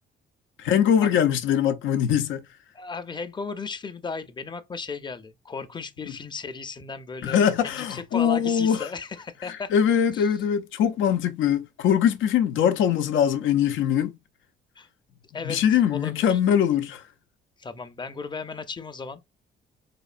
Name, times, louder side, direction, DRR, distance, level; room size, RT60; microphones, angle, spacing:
voice 1, 0.6-2.4 7.2-8.9 9.5-14.2 15.4-17.0, left 9 dB, 80° left, 0.5 m, -22 dB
voice 2, 2.7-9.7 10.1-10.3 14.8-14.9 15.3-15.6 15.9-16.4 17.6-19.2, left 4 dB, 20° left, 0.5 m, -35 dB
4.2 x 2.7 x 2.4 m
cardioid pair, 90°, 20 cm